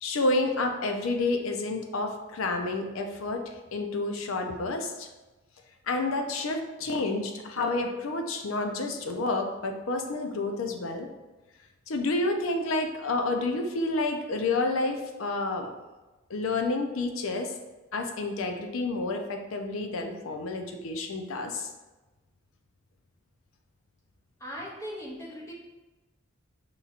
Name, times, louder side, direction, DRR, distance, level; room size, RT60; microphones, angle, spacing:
voice 1, 0.0-5.1 5.9-11.1 11.9-15.7 16.3-17.5 17.9-21.7, left 2 dB, 80° left, 5 dB, 0.5 m, -29 dB
voice 2, 24.4-25.5, equal, 15° left, -3 dB, 0.6 m, -39 dB
5.4 x 3.0 x 2.4 m, 1.1 s
head